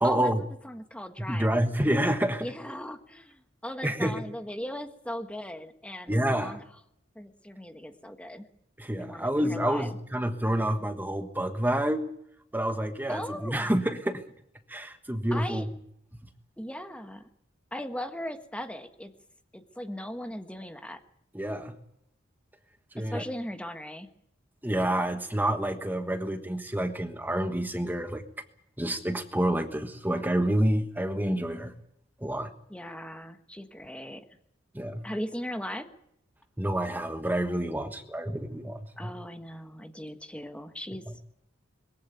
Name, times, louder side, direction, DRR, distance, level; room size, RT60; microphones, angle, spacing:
voice 1, 0.0-0.4 1.2-2.4 3.8-4.1 6.1-6.6 8.8-12.1 12.5-14.2 14.7-15.7 21.3-21.7 22.9-23.2 24.6-28.2 28.8-31.7 32.2-32.5 34.7-35.0 36.6-39.1, right 1 dB, 10° right, 7 dB, 1.3 m, -28 dB
voice 2, 0.6-1.6 2.4-6.6 7.1-8.5 9.0-10.0 13.1-13.7 15.3-15.6 16.6-17.3 17.7-19.1 19.5-21.0 23.0-24.1 32.7-34.2 35.0-35.9 39.0-41.1, left 1 dB, 5° left, 7 dB, 1.3 m, -38 dB
22.0 x 15.5 x 9.2 m, 0.74 s
head